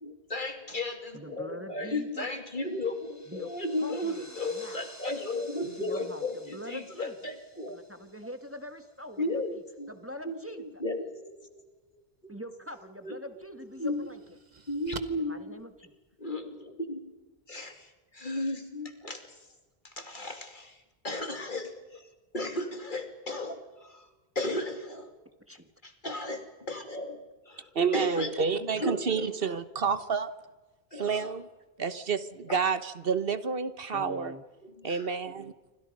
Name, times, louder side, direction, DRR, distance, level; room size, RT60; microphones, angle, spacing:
voice 1, 0.0-7.8 9.2-9.9 10.2-11.6 12.2-12.3 13.0-13.2 13.6-14.1 14.7-15.6 16.2-17.1 17.5-19.5 19.8-22.1 22.3-25.1 25.8-29.3 30.9-31.3 32.5-32.6 34.6-35.1, left 1 dB, 50° left, 6 dB, 2.8 m, -35 dB
voice 2, 1.1-2.3 3.3-3.5 3.8-4.8 5.8-6.2 6.5-7.1 7.7-9.4 9.9-10.6 12.3-14.2 15.1-15.9 25.5-25.7 33.9-34.4, equal, 15° right, 8 dB, 1.5 m, -43 dB
sound 1, 2.2-9.0, equal, 15° left, 2.5 m, -53 dB
sound 2, 12.7-12.8 13.4-16.4, right 4 dB, 45° right, 1.5 m, -47 dB
voice 3, 27.7-30.3 30.9-31.5 31.8-34.3 34.8-35.5, right 5 dB, 65° right, 13 dB, 1.3 m, -29 dB
28.0 x 25.5 x 5.3 m, 1.1 s
omnidirectional pair, 1.1 m